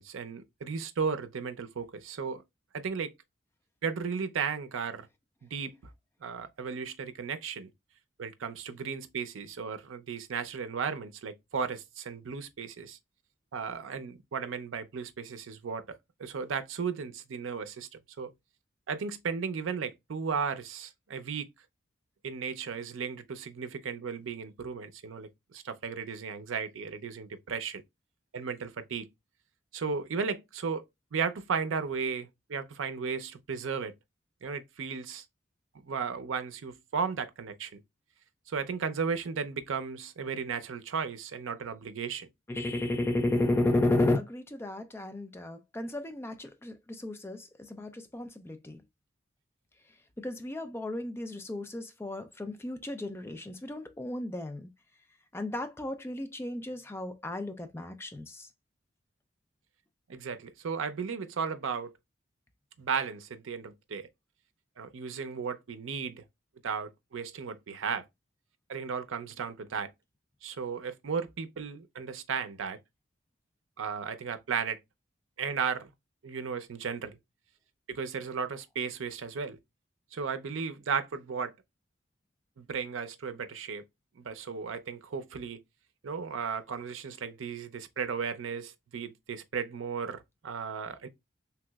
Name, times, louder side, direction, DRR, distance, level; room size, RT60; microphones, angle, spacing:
voice 1, 0.0-2.4 2.7-3.1 3.8-5.1 5.4-5.8 6.2-7.7 8.2-13.0 13.5-17.9 18.2-18.3 18.9-21.5 22.2-27.8 28.3-29.1 29.7-30.8 31.1-33.9 34.4-35.2 35.7-37.8 38.5-42.3 60.1-61.9 62.8-64.1 64.8-66.2 66.6-68.0 68.7-69.9 70.4-72.8 73.8-74.8 75.4-75.9 76.2-77.2 77.9-79.6 80.1-81.5 82.6-83.8 84.2-85.6 86.0-91.1, right 6 dB, 90° right, 0.5 m, -35 dB
voice 2, 42.5-48.8 50.2-54.7 55.3-58.5, left 2 dB, 15° left, 0.3 m, -33 dB
3.4 x 2.9 x 2.2 m
head